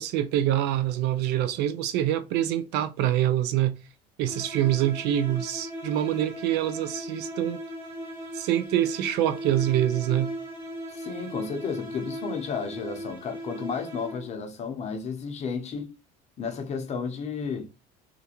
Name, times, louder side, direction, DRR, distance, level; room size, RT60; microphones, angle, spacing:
voice 1, 0.0-3.7 4.2-7.6 8.3-10.3, right 12 dB, 65° right, 0.4 m, -25 dB
sound 1, 4.2-14.5, equal, 15° right, 0.9 m, -38 dB
voice 2, 10.9-15.9 16.4-17.7, left 5 dB, 35° left, 0.7 m, -33 dB
2.5 x 2.2 x 2.9 m
supercardioid pair, 115°, 19 cm